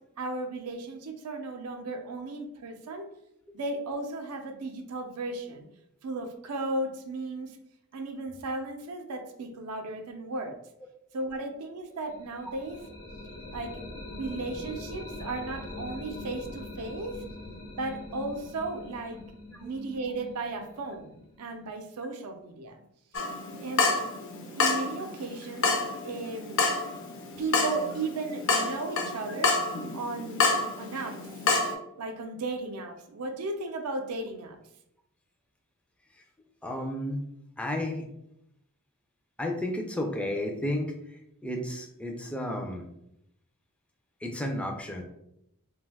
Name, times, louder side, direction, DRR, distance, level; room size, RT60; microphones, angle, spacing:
voice 1, 0.0-3.1 3.5-5.7 6.0-7.5 7.9-10.6 11.1-12.8 13.5-13.8 14.1-17.2 17.7-19.2 19.6-22.8 23.6-24.0 24.6-26.6 27.4-29.6 29.9-31.2 32.0-34.6, right 2 dB, 85° right, 6 dB, 0.5 m, -35 dB
sound 1, 12.1-21.8, left 2 dB, 90° left, 0.9 m, -42 dB
Water tap faucet / Drip, 23.1-31.7, left 3 dB, 60° left, 0.5 m, -29 dB
voice 2, 36.6-37.2 37.6-38.1 39.4-40.9 41.4-42.8 44.2-45.0, left 1 dB, 5° left, 2 dB, 0.3 m, -32 dB
2.5 x 2.2 x 3.3 m, 0.79 s
head